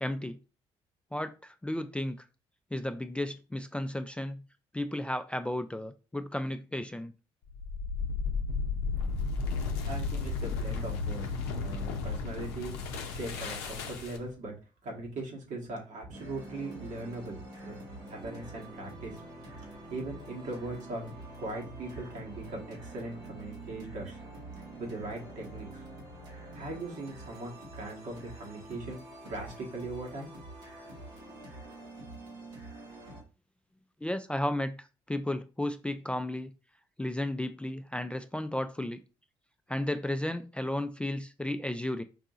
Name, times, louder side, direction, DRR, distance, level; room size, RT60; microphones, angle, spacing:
voice 1, 0.0-0.4 1.1-2.2 2.7-4.4 4.7-7.1 34.0-34.7 35.1-36.5 37.0-39.0 39.7-42.0, left 1 dB, 10° left, 9 dB, 0.3 m, -33 dB
sound 1, 7.5-14.3, left 4 dB, 90° left, 0.5 m, -33 dB
voice 2, 9.9-11.2 11.6-12.7 13.1-14.5 14.8-17.7 18.1-19.2 19.9-21.1 21.4-24.2 24.6-25.8 26.5-30.3, right 2 dB, 70° right, -1 dB, 1.4 m, -40 dB
sound 2, 16.1-33.2, right 2 dB, 85° right, 1.5 m, -46 dB
4.8 x 2.7 x 2.4 m, 0.32 s
hypercardioid pair, 50°, 13 cm